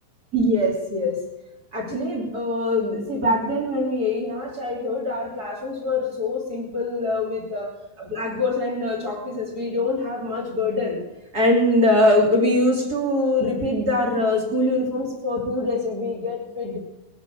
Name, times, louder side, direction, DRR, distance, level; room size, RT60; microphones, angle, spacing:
voice 1, 0.3-1.2 1.7-7.7 8.0-11.0 11.3-16.8, left 1 dB, 20° right, -1 dB, 3.0 m, -23 dB
21.0 x 9.0 x 7.1 m, 1.0 s
omnidirectional pair, 5.8 m